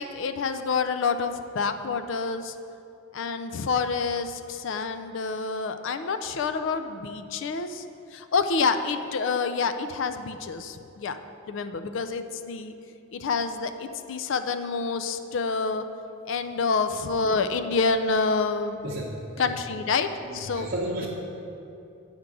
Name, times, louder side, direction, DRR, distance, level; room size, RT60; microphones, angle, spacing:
voice 1, 0.0-2.6 3.1-7.8 8.1-11.2 11.5-12.7 13.1-15.9 16.3-18.8 19.4-20.7, left 4 dB, 60° left, 9 dB, 0.4 m, -28 dB
voice 2, 18.8-19.5 20.2-21.1, right 1 dB, 45° right, -5 dB, 0.8 m, -33 dB
8.9 x 3.6 x 6.0 m, 2.7 s
head